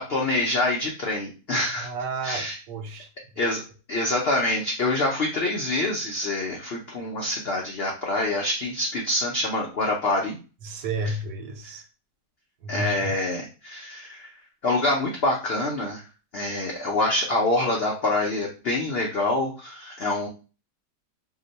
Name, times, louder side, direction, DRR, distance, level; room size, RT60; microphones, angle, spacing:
voice 1, 0.1-1.9 2.2-2.6 3.4-3.6 3.9-10.4 12.7-14.3 14.6-16.0 16.3-20.3, left 2 dB, 75° left, 0.5 m, -26 dB
voice 2, 1.8-3.1 10.6-11.8 12.6-13.2, right 2 dB, 85° right, 1.2 m, -32 dB
2.9 x 2.1 x 4.0 m
omnidirectional pair, 1.8 m